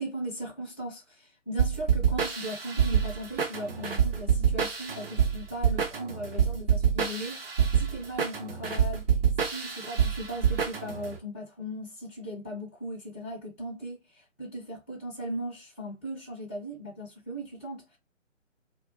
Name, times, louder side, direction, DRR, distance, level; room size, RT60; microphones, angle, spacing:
voice 1, 0.0-9.2 9.5-18.0, right 1 dB, 15° left, 0.5 m, -38 dB
sound 1, 1.6-11.1, right 8 dB, 50° right, 0.6 m, -26 dB
2.3 x 2.1 x 2.8 m
figure-of-eight pair, 145°, 39 cm